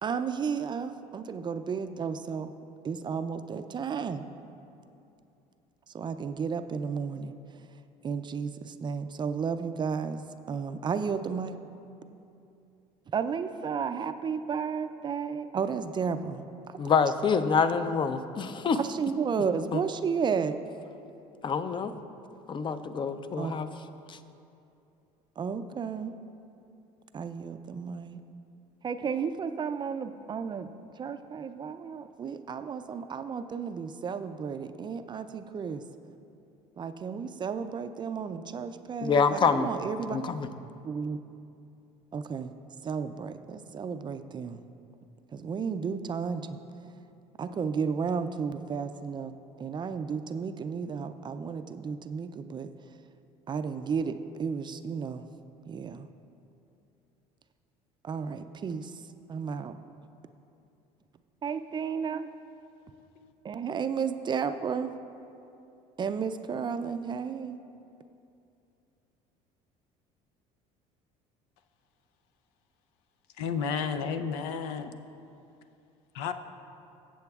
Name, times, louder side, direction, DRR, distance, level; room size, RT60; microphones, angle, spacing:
voice 1, 0.0-2.5 2.8-4.2 5.9-7.3 8.0-10.2 10.5-11.6 13.1-16.8 18.7-20.6 23.3-23.5 25.4-26.1 27.1-28.2 28.8-35.8 36.8-40.2 40.8-41.2 42.1-42.5 42.8-44.6 45.3-46.6 47.4-52.7 53.5-55.3 55.7-56.1 58.0-58.9 59.3-59.8 61.4-62.3 63.4-64.9 66.0-67.6, right 6 dB, 30° right, 10 dB, 0.4 m, -33 dB
voice 2, 16.8-18.8 19.7-19.8 21.4-22.0 22.5-23.7 24.1-24.2 39.0-39.7 40.1-40.5, left 5 dB, 30° left, 11 dB, 0.5 m, -26 dB
voice 3, 73.4-74.9 76.1-76.3, left 6 dB, 85° left, 9 dB, 0.5 m, -32 dB
14.5 x 7.8 x 2.4 m, 2.7 s
supercardioid pair, 95°, 15 cm